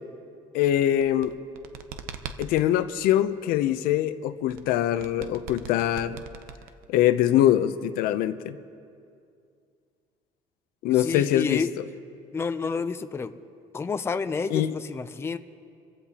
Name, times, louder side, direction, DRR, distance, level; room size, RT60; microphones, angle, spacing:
voice 1, 0.5-1.4 2.4-6.2 6.9-8.6 10.8-11.6 14.5-14.7, left 12 dB, 85° left, 12 dB, 0.7 m, -23 dB
sound 1, 0.9-2.7 4.5-7.1, right 7 dB, 75° right, 0.8 m, -41 dB
voice 2, 11.0-11.7 12.3-13.3 13.7-15.4, left 5 dB, 15° left, 10 dB, 0.5 m, -29 dB
28.0 x 15.0 x 2.9 m, 2.4 s
cardioid pair, 145°, 15 cm